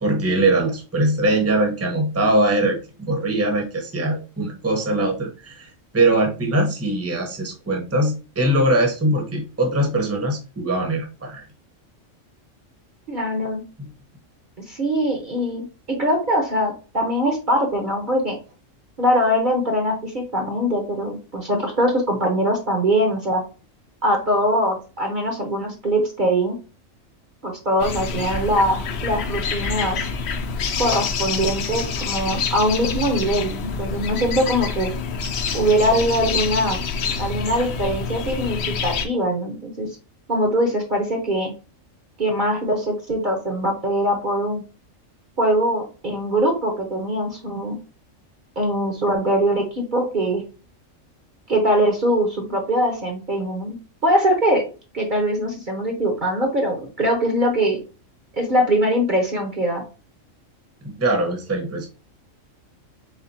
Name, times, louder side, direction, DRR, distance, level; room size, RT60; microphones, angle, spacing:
voice 1, 0.0-5.7 5.9-11.4 13.8-13.9 61.0-61.9, right 1 dB, 15° right, 2 dB, 0.8 m, -21 dB
voice 2, 13.1-13.6 14.7-18.4 19.0-23.4 24.0-26.6 27.4-30.1 30.8-34.9 35.5-36.8 37.2-39.9 40.3-41.5 42.2-44.6 45.4-47.8 48.6-50.4 51.5-53.8 54.0-54.6 54.9-57.8 58.3-59.8, equal, 40° right, 2 dB, 0.9 m, -22 dB
sound 1, 27.8-39.1, left 5 dB, 60° left, 0.8 m, -27 dB
4.3 x 3.7 x 2.7 m, 0.33 s
omnidirectional pair, 1.4 m